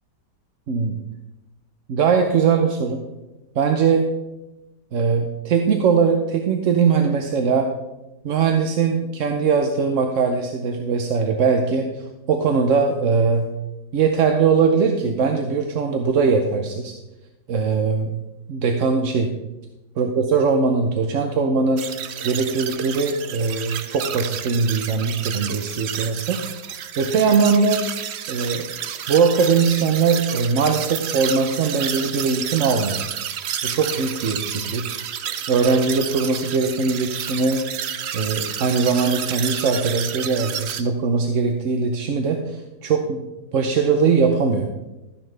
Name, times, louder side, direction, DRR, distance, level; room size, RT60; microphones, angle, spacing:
voice 1, 0.7-1.0 1.9-3.0 3.6-4.1 4.9-7.7 8.2-12.0 12.3-13.5 13.9-16.9 17.5-18.1 18.5-19.3 20.0-21.8 22.2-26.4 27.0-27.8 28.3-28.7 29.1-33.0 33.6-34.9 35.5-37.7 38.1-43.3 43.5-44.7, right 5 dB, 55° right, 4 dB, 1.0 m, -20 dB
sound 1, 21.8-40.8, right 9 dB, 80° right, 0.6 m, -30 dB
13.0 x 10.0 x 3.3 m, 1.0 s
omnidirectional pair, 1.8 m